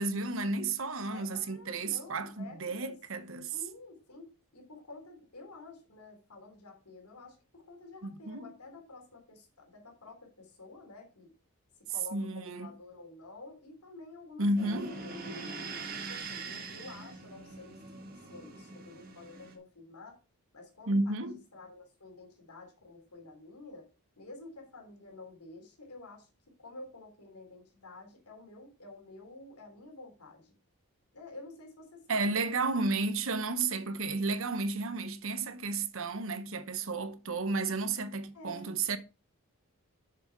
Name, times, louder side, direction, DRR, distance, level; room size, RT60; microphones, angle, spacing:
voice 1, 0.0-3.5 8.0-8.5 12.1-12.7 14.4-14.9 20.9-21.4 32.1-39.0, right 3 dB, 60° right, 0.9 m, -32 dB
voice 2, 1.1-3.0 3.5-11.3 11.9-15.5 15.9-17.8 18.3-20.2 20.5-23.9 24.2-26.3 26.6-30.5 31.1-32.6 38.3-38.8, left 2 dB, 90° left, 3.2 m, -50 dB
sound 1, 14.6-19.6, right 3 dB, 40° right, 1.5 m, -43 dB
7.0 x 6.9 x 4.5 m
head